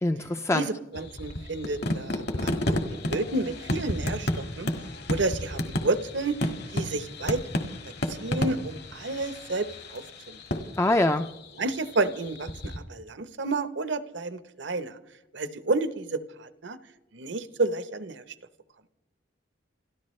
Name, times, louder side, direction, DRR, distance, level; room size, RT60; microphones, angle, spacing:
voice 1, 0.0-0.7 10.8-11.3, left 1 dB, 15° left, 7 dB, 0.4 m, -24 dB
voice 2, 0.5-4.7 5.1-7.4 8.1-10.4 11.6-15.0 15.3-16.8 17.1-18.2, right 3 dB, 75° right, 12 dB, 1.0 m, -31 dB
sound 1, 0.9-12.8, left 1 dB, 60° left, 1.8 m, -32 dB
28.0 x 13.5 x 3.2 m, 0.98 s
head